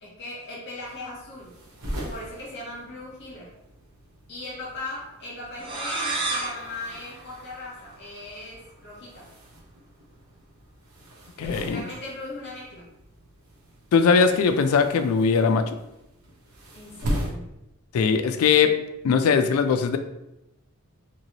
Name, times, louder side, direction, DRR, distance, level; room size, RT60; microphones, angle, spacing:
voice 1, 0.0-1.6 2.1-3.6 4.3-9.3 11.4-12.8 16.7-17.5, left 2 dB, 50° left, -5 dB, 0.9 m, -39 dB
sound 1, 0.8-17.3, equal, 90° right, 0.8 m, -39 dB
sound 2, 5.6-8.2, right 2 dB, 25° right, 0.5 m, -32 dB
voice 2, 11.4-11.8 13.9-15.6 17.9-18.7 19.0-20.0, left 5 dB, 70° left, 8 dB, 0.3 m, -20 dB
3.0 x 2.8 x 2.8 m, 0.87 s
head